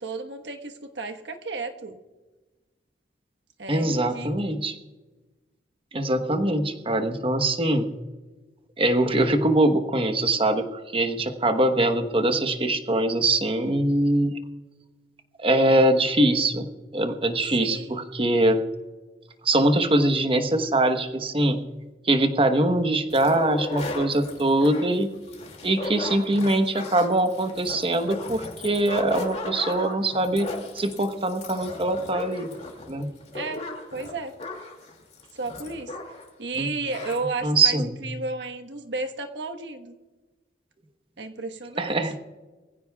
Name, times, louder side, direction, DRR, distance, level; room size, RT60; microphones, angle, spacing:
voice 1, 0.0-2.0 3.6-4.6 17.6-18.0 33.3-34.3 35.3-35.9 36.4-39.9 41.2-42.0, right 3 dB, 75° right, 5 dB, 1.3 m, -33 dB
voice 2, 3.7-4.7 5.9-7.9 8.8-14.3 15.4-16.7 16.9-18.6 19.4-21.6 22.0-25.1 25.6-30.5 30.7-32.5 32.9-33.1 36.6-36.7 37.4-38.0 41.8-42.2, right 1 dB, 30° right, 7 dB, 1.1 m, -23 dB
sound 1, 23.1-36.3 36.5-36.6 36.9-37.2, left 2 dB, 35° left, 2.5 m, -36 dB
23.0 x 15.5 x 2.4 m, 1.2 s
head